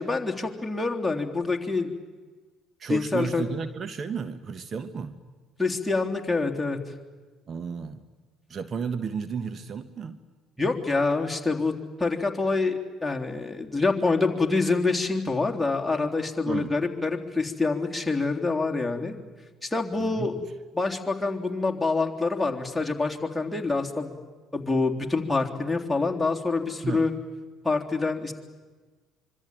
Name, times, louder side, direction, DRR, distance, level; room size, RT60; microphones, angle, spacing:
voice 1, 0.0-1.9 2.9-3.4 5.6-6.8 10.6-11.7 12.0-19.2 19.6-20.3 20.7-24.2 24.5-27.1 27.6-28.3, left 3 dB, 10° left, 1 dB, 3.6 m, -26 dB
voice 2, 2.8-5.2 7.5-8.0 8.5-10.2 16.4-16.7 20.0-20.5 26.8-27.1, right 6 dB, 40° right, 11 dB, 1.4 m, -33 dB
25.5 x 24.5 x 9.1 m, 1.4 s
hypercardioid pair, 55°, 0 cm